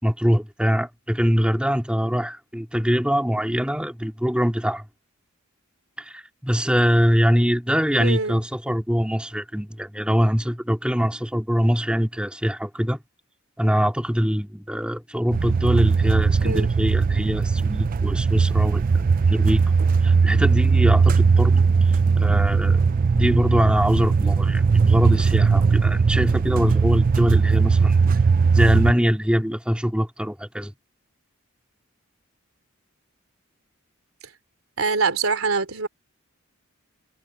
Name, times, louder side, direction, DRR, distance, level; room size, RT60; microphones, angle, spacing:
voice 1, 0.0-4.8 6.0-13.0 13.6-18.8 19.3-19.6 20.0-21.7 22.2-22.8 23.1-28.0 28.5-30.7, equal, 5° right, 2.8 m, -23 dB
voice 2, 8.0-8.4 16.4-16.7 34.8-35.9, right 4 dB, 80° right, 3.1 m, -24 dB
sound 1, 15.3-28.9, right 5 dB, 40° right, 0.4 m, -19 dB
head